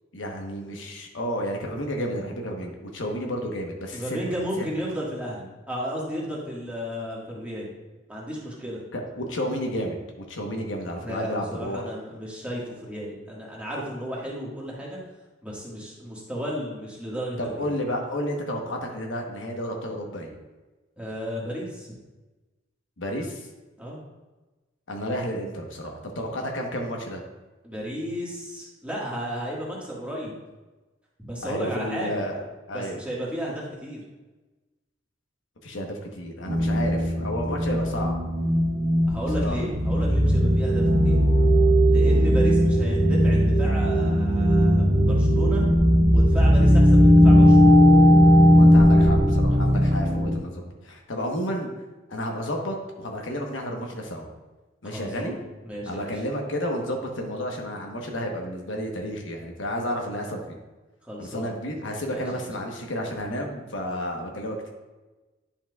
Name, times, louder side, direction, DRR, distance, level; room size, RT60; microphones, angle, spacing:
voice 1, 0.1-4.2 8.9-11.8 17.4-20.3 23.0-23.5 24.9-27.2 31.4-33.0 35.6-38.1 39.3-39.6 48.5-51.7 52.1-54.3 54.8-55.4 55.9-60.6 61.2-64.7, equal, 75° left, 1 dB, 1.1 m, -31 dB
voice 2, 3.9-7.7 8.1-8.8 11.0-15.0 15.4-17.7 21.0-21.9 23.8-24.0 27.6-30.3 31.2-32.2 32.7-34.0 39.1-41.2 41.8-45.7 46.1-47.8 54.8-55.4 55.6-56.1 61.0-61.5 62.1-62.5, equal, 5° right, -5 dB, 1.6 m, -33 dB
sound 1, 36.5-50.4, equal, 85° right, 1.3 m, -18 dB
10.0 x 5.7 x 2.3 m, 1.2 s
head